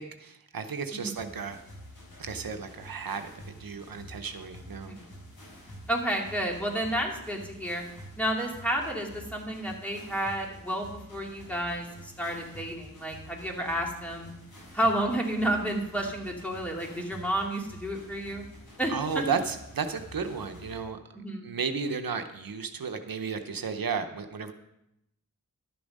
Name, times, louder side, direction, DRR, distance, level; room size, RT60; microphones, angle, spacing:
voice 1, 0.0-1.6 2.2-4.9 18.9-21.0 21.4-24.5, right 5 dB, 85° right, 7 dB, 0.8 m, -33 dB
voice 2, 0.9-1.2 4.9-5.0 5.9-7.8 8.2-14.3 14.7-18.4 18.8-19.2 21.1-21.5, right 1 dB, 5° left, -1 dB, 2.6 m, -31 dB
sound 1, 1.2-20.8, equal, 90° left, 3.8 m, -48 dB
12.0 x 7.0 x 5.3 m, 0.83 s
cardioid pair, 40°, 34 cm